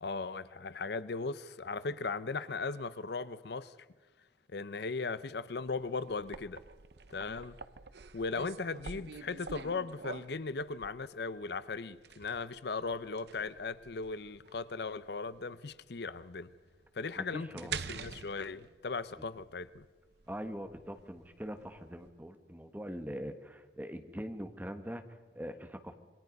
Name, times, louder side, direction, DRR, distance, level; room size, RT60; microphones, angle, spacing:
voice 1, 0.0-3.7 4.5-6.6 7.1-7.6 8.1-16.5 16.9-19.9, left 4 dB, 65° left, 0.7 m, -38 dB
sound 1, 5.6-22.1, right 5 dB, 65° right, 0.8 m, -47 dB
voice 2, 17.2-17.7 20.3-25.9, equal, 10° right, 1.5 m, -42 dB
27.5 x 22.0 x 5.4 m
head